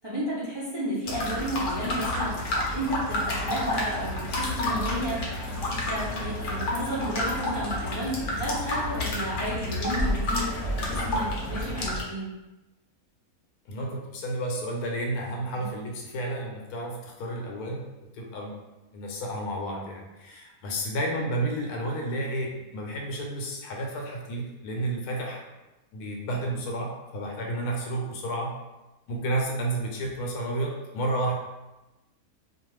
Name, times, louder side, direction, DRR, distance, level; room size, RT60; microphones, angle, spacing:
voice 1, 0.0-2.4 2.7-5.4 5.7-10.5 10.7-12.3 15.6-15.7, right 1 dB, 40° right, -10 dB, 0.3 m, -32 dB
sound 1, 1.1-12.0, left 1 dB, 65° left, 0.8 m, -30 dB
voice 2, 13.7-17.8 18.1-18.5 18.9-25.4 25.9-28.6 29.1-31.4, right 1 dB, 85° left, 0 dB, 1.1 m, -31 dB
2.4 x 2.3 x 3.1 m, 1.0 s
omnidirectional pair, 1.6 m